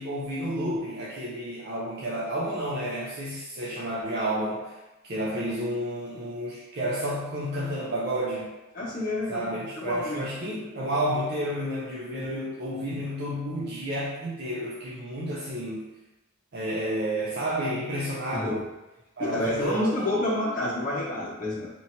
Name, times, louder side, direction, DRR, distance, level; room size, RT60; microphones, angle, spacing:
voice 1, 0.0-4.8 5.1-8.5 9.3-15.9 16.5-18.6 19.2-19.9, right 1 dB, 45° right, -5 dB, 0.5 m, -31 dB
voice 2, 8.7-10.3 10.6-10.7 12.2-12.4 18.3-18.6 19.2-21.7, left 1 dB, 35° left, -5 dB, 1.0 m, -29 dB
3.0 x 2.7 x 4.4 m, 1.1 s
head